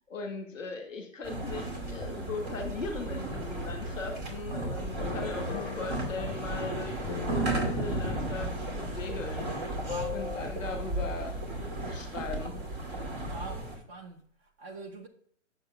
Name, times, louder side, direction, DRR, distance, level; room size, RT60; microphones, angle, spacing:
voice 1, 0.1-7.0 7.3-9.7 10.1-12.6, left 3 dB, ahead, 0.3 m, -39 dB
sound 1, 1.2-13.8, right 2 dB, 35° right, 2.5 m, -34 dB
sound 2, 5.0-10.4, left 10 dB, 40° left, 0.8 m, -41 dB
voice 2, 9.8-10.2 13.3-15.1, right 2 dB, 20° right, 1.0 m, -44 dB
9.3 x 7.0 x 3.4 m
hypercardioid pair, 140°, 38 cm